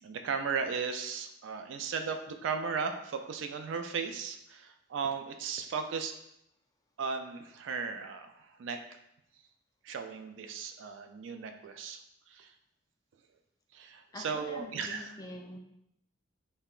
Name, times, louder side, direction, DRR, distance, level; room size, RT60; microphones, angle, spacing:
voice 1, 0.0-6.1 7.0-8.8 9.8-12.0 12.3-12.5 13.7-15.1, right 5 dB, 65° right, 7 dB, 0.3 m, -36 dB
voice 2, 14.1-15.6, left 2 dB, 20° left, 2 dB, 0.3 m, -45 dB
5.4 x 2.1 x 2.3 m, 0.80 s
head